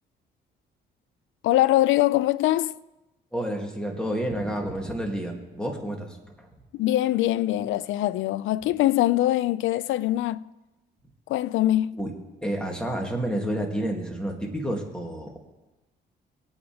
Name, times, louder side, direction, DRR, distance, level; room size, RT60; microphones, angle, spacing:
voice 1, 1.4-2.8 6.7-10.4 11.3-12.0, left 14 dB, 80° left, 0.4 m, -23 dB
voice 2, 3.3-6.5 12.0-12.1 12.4-15.4, right 1 dB, 5° left, 2.5 m, -30 dB
20.0 x 8.9 x 3.5 m
cardioid pair, 90°, 20 cm